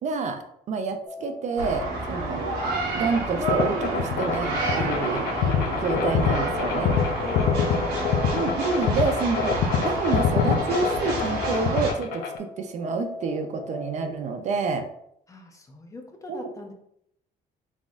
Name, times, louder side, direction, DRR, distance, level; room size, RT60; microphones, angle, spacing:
voice 1, 0.0-2.5 2.9-5.3 5.8-7.0 8.3-14.9 16.3-16.5, right 4 dB, 45° right, 6 dB, 0.4 m, -28 dB
sound 1, 1.0-14.3, left 3 dB, 40° left, 0.9 m, -41 dB
sound 2, 1.6-11.9, right 2 dB, 85° right, 1.1 m, -30 dB
sound 3, 3.5-12.4, left 6 dB, 75° left, 0.5 m, -25 dB
voice 2, 7.2-8.0 15.3-16.7, left 2 dB, 20° left, 3 dB, 0.5 m, -41 dB
4.0 x 3.6 x 2.4 m, 0.73 s
cardioid pair, 140°, 16 cm